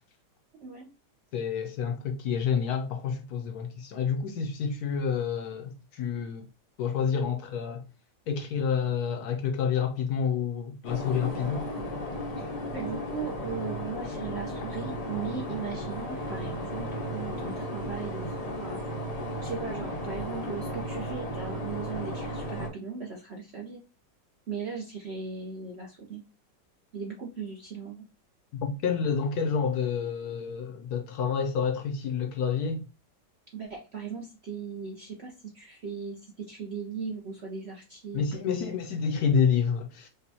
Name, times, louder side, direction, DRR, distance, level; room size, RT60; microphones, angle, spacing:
voice 1, 1.3-6.5 6.8-7.8 8.3-11.6 28.6-32.8 38.1-40.1, left 6 dB, 70° left, 1.0 m, -28 dB
sound 1, 10.8-22.7, equal, 45° left, 0.4 m, -35 dB
voice 2, 12.4-18.8 19.1-23.8 24.5-26.2 26.9-28.0 33.5-38.7, right 5 dB, 60° right, 0.7 m, -38 dB
5.2 x 2.2 x 2.7 m
omnidirectional pair, 1.9 m